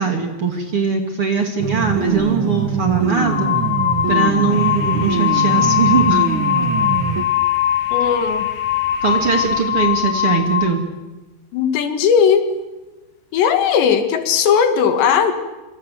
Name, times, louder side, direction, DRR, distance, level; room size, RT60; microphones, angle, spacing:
voice 1, 0.0-3.5 4.1-6.3 9.0-10.8, right 5 dB, 35° right, 3 dB, 3.0 m, -20 dB
sound 1, 1.6-7.2, right 6 dB, 55° right, 1.4 m, -22 dB
sound 2, 2.1-2.3 3.1-10.8, left 10 dB, 60° left, 2.4 m, -20 dB
sound 3, 4.5-9.7, left 2 dB, 40° left, 6.4 m, -41 dB
voice 2, 7.9-8.5 11.5-12.5 13.3-15.3, left 7 dB, 80° left, 7 dB, 4.1 m, -17 dB
25.5 x 25.0 x 7.7 m, 1.1 s
omnidirectional pair, 4.9 m